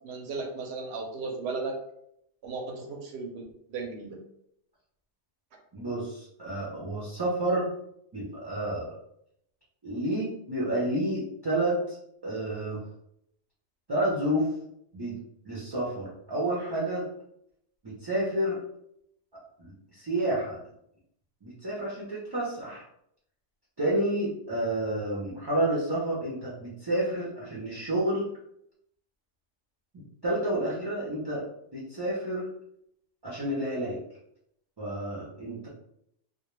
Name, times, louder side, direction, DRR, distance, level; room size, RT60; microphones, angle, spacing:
voice 1, 0.0-1.8 2.4-3.4 3.7-4.2, right 3 dB, 70° right, 2 dB, 0.8 m, -35 dB
voice 2, 5.7-7.7 8.1-8.9 9.8-12.0 12.2-12.9 13.9-14.5 14.9-15.2 15.4-17.1 17.8-18.6 19.6-20.6 21.4-22.8 23.8-28.3 30.2-31.4 31.7-32.5 33.2-34.0 34.8-35.7, right 1 dB, 35° right, -7 dB, 0.4 m, -30 dB
2.2 x 2.0 x 3.0 m, 0.74 s
omnidirectional pair, 1.2 m